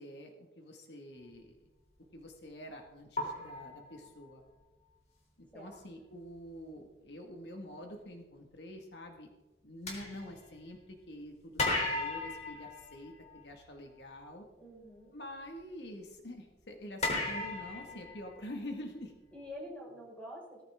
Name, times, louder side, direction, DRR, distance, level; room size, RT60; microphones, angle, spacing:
voice 1, 0.0-1.6 2.1-4.4 5.4-9.3 9.6-14.5 15.1-19.1, left 1 dB, 70° left, 3 dB, 2.0 m, -47 dB
sound 1, 2.0-2.2 3.2-4.5 5.7-5.8 6.2-6.5 9.9-11.1 11.6-13.7 17.0-18.8, left 2 dB, 35° left, 3.8 m, -36 dB
voice 2, 14.6-15.1 17.9-18.1 19.3-20.6, equal, 5° left, -4 dB, 5.5 m, -47 dB
18.5 x 14.0 x 3.7 m, 1.1 s
head